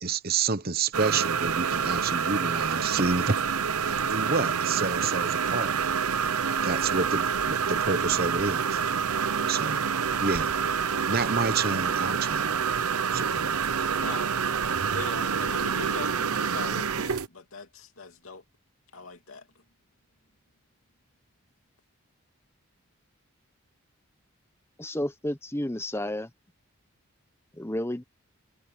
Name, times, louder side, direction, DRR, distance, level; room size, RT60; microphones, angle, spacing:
voice 1, 0.0-3.4 3.8-5.8 6.6-8.8 9.5-9.9 10.2-10.5 11.1-12.6 13.1-13.6, right 4 dB, 45° right, 1.0 m, -29 dB
sound 1, 0.9-17.3, right 6 dB, 85° right, 0.8 m, -27 dB
voice 2, 14.0-14.3 14.9-18.4 18.9-19.5, left 3 dB, 70° left, 2.9 m, -40 dB
voice 3, 24.8-26.3 27.5-28.0, left 1 dB, 10° left, 1.0 m, -31 dB
head